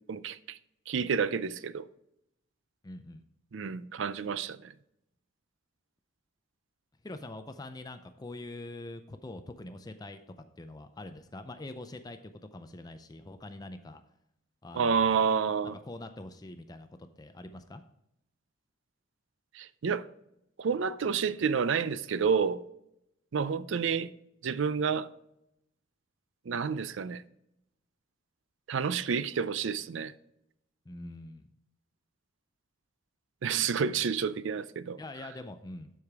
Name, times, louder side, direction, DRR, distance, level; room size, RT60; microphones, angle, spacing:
voice 1, 0.1-0.6 0.9-1.9 3.5-4.7 14.7-15.7 19.5-20.1 20.6-22.6 23.3-24.1 24.4-25.1 26.5-27.2 28.7-30.1 33.4-35.0, right 6 dB, 65° right, 0.4 m, -29 dB
voice 2, 2.8-3.2 7.0-10.2 10.6-14.0 14.6-15.2 15.6-16.9 17.2-17.8 30.9-31.5 35.0-35.9, left 2 dB, 20° left, 0.4 m, -44 dB
12.0 x 4.9 x 3.5 m
head